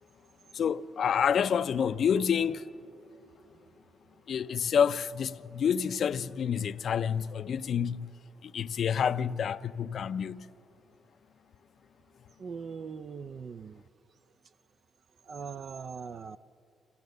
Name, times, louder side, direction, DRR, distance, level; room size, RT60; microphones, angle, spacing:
voice 1, 0.5-2.6 4.3-8.1 8.4-10.4, left 7 dB, 60° left, 0.5 m, -28 dB
voice 2, 12.4-13.8 15.3-16.4, right 5 dB, 50° right, 0.4 m, -40 dB
26.5 x 16.0 x 6.6 m
cardioid pair, 110°, 0 cm